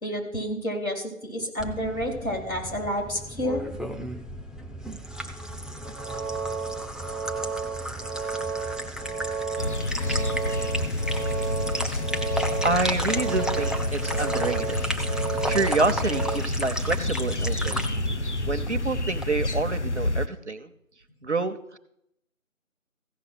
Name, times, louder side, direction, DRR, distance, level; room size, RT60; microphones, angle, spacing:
voice 1, 0.0-3.6, equal, 85° left, 1 dB, 3.9 m, -30 dB
sound 1, 1.6-19.2, equal, ahead, 0.5 m, -34 dB
sound 2, 5.8-16.4, right 5 dB, 90° right, 0.7 m, -33 dB
sound 3, 9.6-20.3, left 2 dB, 55° left, 0.6 m, -29 dB
voice 2, 12.6-14.8 15.4-17.8 18.4-20.7 21.2-21.8, right 3 dB, 55° right, 10 dB, 0.8 m, -28 dB
15.0 x 5.7 x 6.1 m, 0.78 s
figure-of-eight pair, 180°, 41 cm